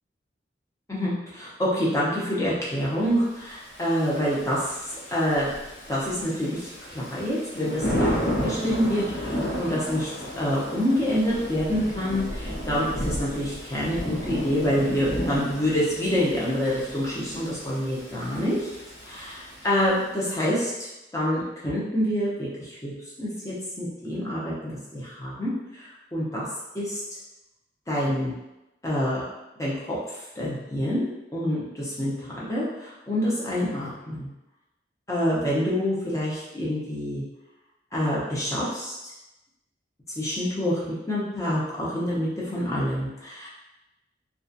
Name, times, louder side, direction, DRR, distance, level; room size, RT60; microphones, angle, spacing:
voice 1, 0.9-5.5 5.9-10.1 10.4-18.7 19.0-22.9 23.2-26.5 26.7-27.0 27.9-28.3 28.8-29.2 29.6-34.3 35.1-37.2 37.9-38.9 40.2-43.5, equal, 15° left, -7 dB, 0.6 m, -27 dB
Thunder / Rain, 3.5-20.1, equal, 85° left, 1.0 m, -33 dB
2.4 x 2.3 x 2.6 m, 0.95 s
head